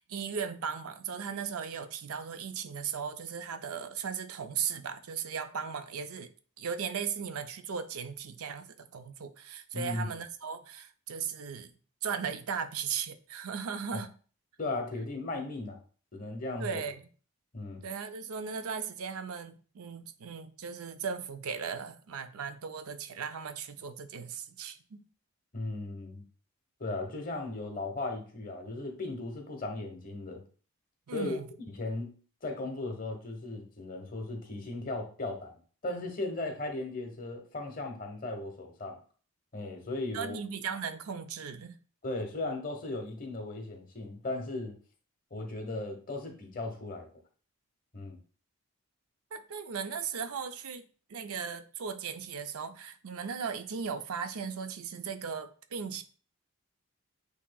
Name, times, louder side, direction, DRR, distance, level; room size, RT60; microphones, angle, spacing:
voice 1, 0.0-11.7 12.0-14.1 16.6-17.1 17.8-25.0 31.1-31.5 40.1-41.8 49.3-50.8 51.1-56.0, right 6 dB, 80° right, 0.5 m, -37 dB
voice 2, 9.7-10.1 13.9-14.0 14.6-15.8 16.1-16.8 17.5-17.8 25.5-26.2 26.8-30.4 31.1-31.4 31.8-32.1 32.4-35.5 35.8-39.0 39.5-40.4 42.0-44.8 45.3-47.1 47.9-48.2, left 2 dB, 40° left, 0.9 m, -36 dB
8.3 x 2.9 x 2.2 m
head